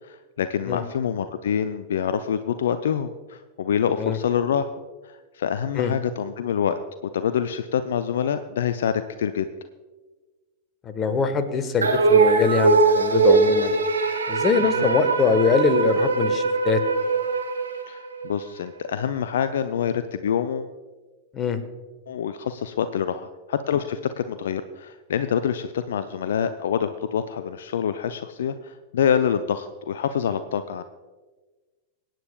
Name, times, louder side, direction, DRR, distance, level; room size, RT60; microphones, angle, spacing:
voice 1, 0.0-4.7 5.0-9.5 14.6-14.9 17.9-20.7 22.1-30.8, left 8 dB, 60° left, 11 dB, 0.4 m, -26 dB
voice 2, 10.8-13.7 14.3-16.8 21.3-21.6, left 5 dB, 25° left, 9 dB, 1.1 m, -23 dB
sound 1, 11.8-18.4, right 3 dB, 75° right, 1.7 m, -21 dB
24.5 x 9.0 x 2.2 m, 1.3 s
figure-of-eight pair, 90°, 0 cm